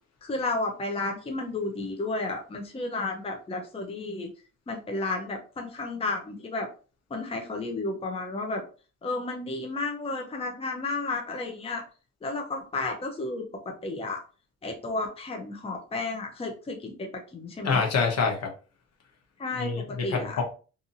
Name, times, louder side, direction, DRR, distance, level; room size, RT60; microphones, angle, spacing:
voice 1, 0.2-4.3 4.7-6.7 7.1-8.6 9.0-11.8 12.2-14.2 14.6-17.8 19.4-20.4, left 2 dB, 20° left, 2 dB, 0.6 m, -32 dB
voice 2, 17.6-18.5 19.6-20.4, left 5 dB, 60° left, 1 dB, 0.9 m, -26 dB
2.6 x 2.6 x 2.6 m, 0.36 s
cardioid pair, 90°, 30 cm